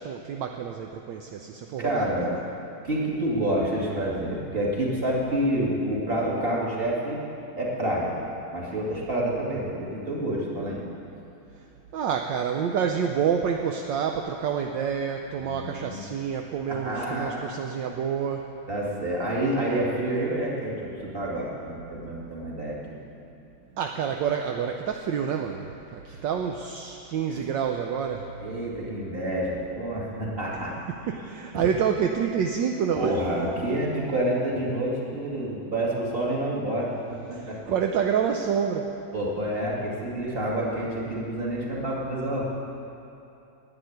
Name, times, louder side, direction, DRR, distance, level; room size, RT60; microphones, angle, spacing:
voice 1, 0.0-2.3 11.9-18.5 23.8-28.3 31.1-33.2 37.3-38.9, right 7 dB, 70° right, 3 dB, 1.3 m, -28 dB
voice 2, 1.8-2.3 2.8-7.2 7.6-8.1 8.5-10.8 15.4-16.0 16.7-17.5 18.7-22.8 26.1-26.2 27.3-27.4 28.4-30.7 31.5-31.7 32.9-37.6 39.1-42.4, right 1 dB, 25° right, -5 dB, 2.6 m, -28 dB
11.0 x 9.2 x 9.5 m, 2.7 s
omnidirectional pair, 2.2 m